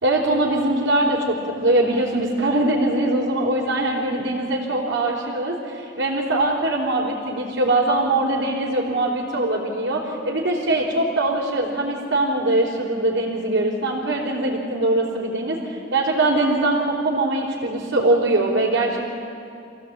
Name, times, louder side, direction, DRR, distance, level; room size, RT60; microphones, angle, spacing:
voice 1, 0.0-19.1, right 2 dB, 60° right, -7 dB, 3.6 m, -22 dB
26.0 x 16.5 x 8.7 m, 2.7 s
head